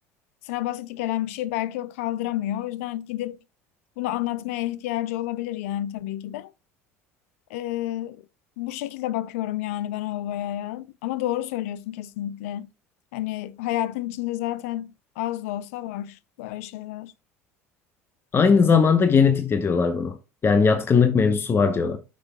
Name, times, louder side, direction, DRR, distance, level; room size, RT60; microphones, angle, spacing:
voice 1, 0.4-3.4 4.0-6.5 7.5-8.2 8.6-12.7 13.1-14.9 15.2-17.1, left 14 dB, 75° left, 0.4 m, -30 dB
voice 2, 18.3-20.2 20.4-22.0, left 5 dB, 30° left, 0.9 m, -19 dB
9.6 x 6.0 x 2.2 m
hypercardioid pair, 80°, 8 cm